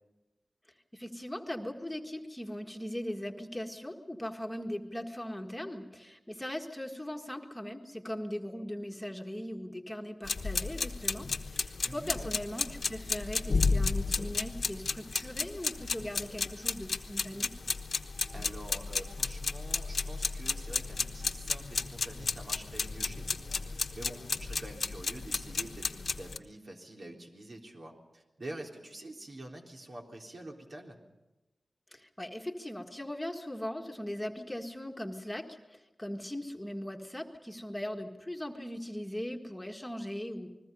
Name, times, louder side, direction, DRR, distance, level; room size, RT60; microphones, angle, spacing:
voice 1, 0.9-17.5 31.9-40.5, left 1 dB, 10° left, 3 dB, 1.6 m, -39 dB
sound 1, 10.3-26.4, left 4 dB, 80° left, 1.1 m, -33 dB
voice 2, 11.8-12.3 18.3-31.0, right 1 dB, 65° right, 0 dB, 3.8 m, -46 dB
29.0 x 21.0 x 5.4 m, 1.0 s
wide cardioid pair, 75°, 0 cm